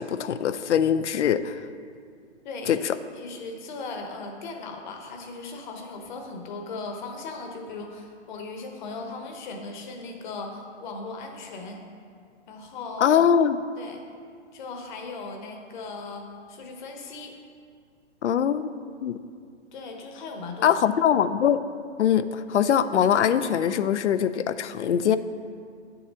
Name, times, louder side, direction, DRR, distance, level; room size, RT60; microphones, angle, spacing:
voice 1, 0.0-1.6 2.7-3.0 13.0-13.6 18.2-18.7 19.0-19.2 20.6-21.6 22.0-25.2, left 8 dB, 80° left, 13 dB, 0.6 m, -22 dB
voice 2, 2.4-2.9 3.2-11.8 12.5-13.1 13.8-14.0 14.5-17.3 19.7-20.7, left 3 dB, 40° left, 3 dB, 1.2 m, -38 dB
8.9 x 6.9 x 3.7 m, 2.2 s
hypercardioid pair, 145°, 35 cm